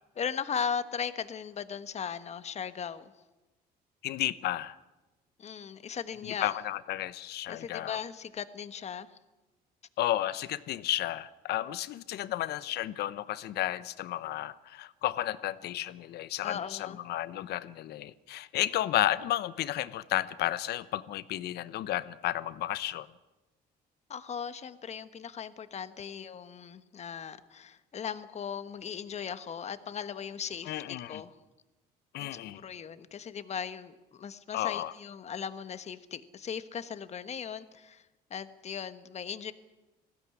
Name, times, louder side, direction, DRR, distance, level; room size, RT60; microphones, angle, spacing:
voice 1, 0.2-3.1 5.4-6.6 7.5-9.1 16.4-17.0 24.1-31.4 32.2-38.0 38.3-39.5, left 7 dB, 40° left, 12 dB, 1.3 m, -38 dB
voice 2, 4.0-4.8 6.2-8.0 10.0-23.1 30.7-31.2 32.1-32.6 34.5-34.9, left 14 dB, 75° left, 16 dB, 0.9 m, -32 dB
20.5 x 16.0 x 9.8 m, 1.1 s
cardioid pair, 110°, 17 cm